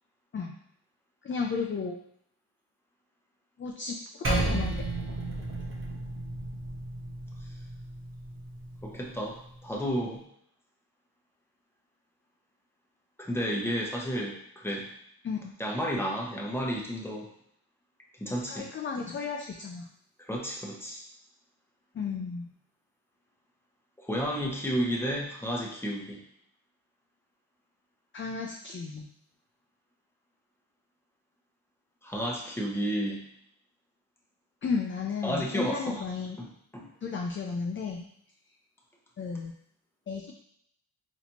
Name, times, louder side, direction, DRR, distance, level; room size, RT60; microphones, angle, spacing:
voice 1, 1.2-2.0 3.6-4.0 4.3-4.8 15.2-15.5 18.5-19.9 22.0-22.5 28.1-29.1 34.6-36.4 37.0-38.0 39.2-39.5 40.1-40.4, left 5 dB, 25° left, 1 dB, 0.4 m, -33 dB
Percussion, 4.2-9.0, right 2 dB, 25° right, 1.0 m, -33 dB
voice 2, 8.8-10.2 13.2-14.9 15.6-17.3 18.1-18.7 20.2-21.0 24.0-26.2 32.0-33.2 35.2-36.0 36.4-36.5 36.7-36.9, equal, 5° left, -2 dB, 0.9 m, -32 dB
4.1 x 2.9 x 2.9 m, 0.69 s
cardioid pair, 85°, 48 cm